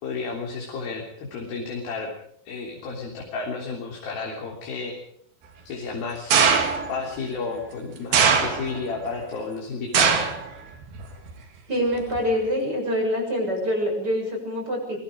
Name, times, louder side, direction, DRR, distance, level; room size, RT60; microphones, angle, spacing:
voice 1, 0.0-2.1 2.5-5.0 5.7-6.4 6.9-10.3, left 4 dB, 85° left, 0 dB, 5.2 m, -32 dB
sound 1, 6.3-7.0 8.1-8.9 9.9-10.4 10.8-11.3 12.2-12.3, right 6 dB, 85° right, 4.4 m, -20 dB
voice 2, 11.7-15.0, equal, 25° right, 2 dB, 7.1 m, -25 dB
25.5 x 21.5 x 5.1 m, 0.66 s
omnidirectional pair, 4.1 m